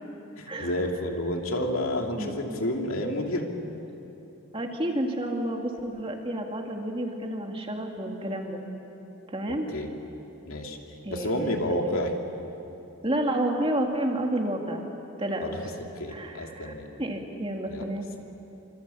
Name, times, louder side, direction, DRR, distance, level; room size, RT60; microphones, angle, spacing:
voice 1, 0.4-3.5 9.5-9.9 10.5-10.8 11.1-12.1 15.4-15.6 15.9-16.9 17.7-17.9, left 1 dB, 70° left, 2 dB, 2.8 m, -30 dB
voice 2, 2.2-2.6 4.5-8.6 9.3-9.7 11.0-12.0 13.0-14.8 15.2-15.5 16.1-16.7 17.0-18.1, right 1 dB, 25° right, 2 dB, 2.4 m, -30 dB
26.5 x 26.0 x 8.5 m, 3.0 s
head